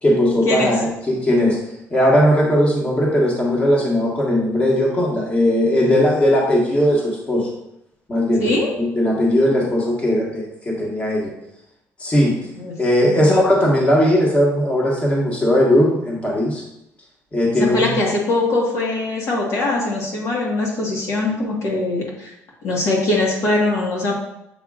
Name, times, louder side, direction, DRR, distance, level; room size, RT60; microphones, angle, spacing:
voice 1, 0.0-1.6 1.9-7.5 8.1-11.3 12.0-12.4 12.8-16.6 17.3-17.9, equal, 20° left, -3 dB, 1.5 m, -18 dB
voice 2, 13.0-13.4 17.6-22.3 22.6-24.1, left 2 dB, 55° left, -2 dB, 1.5 m, -21 dB
7.2 x 5.7 x 2.4 m, 0.82 s
cardioid pair, 145°, 6 cm